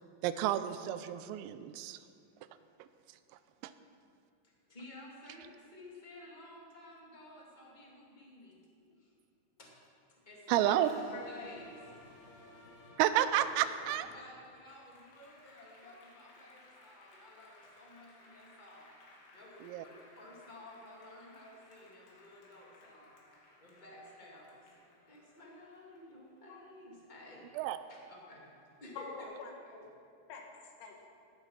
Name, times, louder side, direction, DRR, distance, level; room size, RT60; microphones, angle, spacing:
voice 1, 0.2-2.0 2.8-2.9 3.6-3.7 10.5-10.9 13.0-14.1 19.6-19.9 27.6-27.8, right 12 dB, 85° right, 11 dB, 3.3 m, -30 dB
voice 2, 4.4-8.6 9.0-9.1 9.6-9.7 10.1-11.8 12.9-18.9 19.3-23.1 23.6-24.6 25.1-27.4 27.9-28.0 28.3-28.5 28.8-29.3, left 1 dB, 20° left, -4 dB, 1.2 m, -53 dB
Applause, 10.6-27.4 27.8-29.0, left 2 dB, 65° left, 4.6 m, -60 dB
voice 3, 29.0-29.9 30.3-31.0, left 4 dB, 90° left, 1 dB, 4.7 m, -47 dB
18.5 x 12.5 x 5.8 m, 2.4 s
omnidirectional pair, 6.0 m